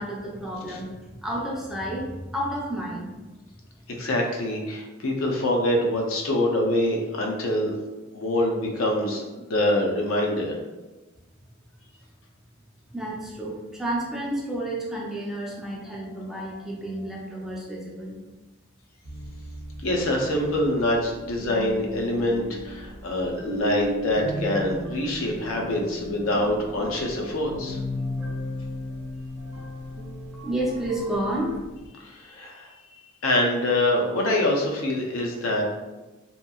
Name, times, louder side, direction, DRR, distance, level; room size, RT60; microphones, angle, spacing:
voice 1, 0.0-3.2 12.9-18.2 30.3-31.6, right 1 dB, ahead, -4 dB, 0.5 m, -31 dB
voice 2, 3.9-7.7 8.1-10.6 19.8-27.8 32.0-32.7 33.2-35.6, left 1 dB, 90° left, 1 dB, 0.5 m, -25 dB
sound 1, 19.0-31.9, equal, 80° right, 0.7 m, -36 dB
2.8 x 2.5 x 2.3 m, 1.1 s
head